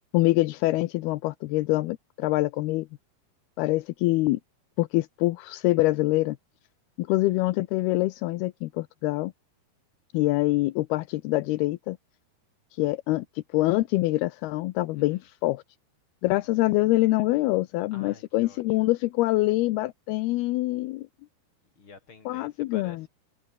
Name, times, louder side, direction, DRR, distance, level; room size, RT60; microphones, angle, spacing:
voice 1, 0.1-2.9 3.6-4.4 4.8-6.4 7.0-9.3 10.1-12.0 12.7-15.6 16.2-21.1 22.3-23.0, left 19 dB, 80° left, 2.6 m, -25 dB
voice 2, 17.9-18.6 21.8-23.1, left 4 dB, 30° left, 5.4 m, -49 dB
omnidirectional pair, 4.7 m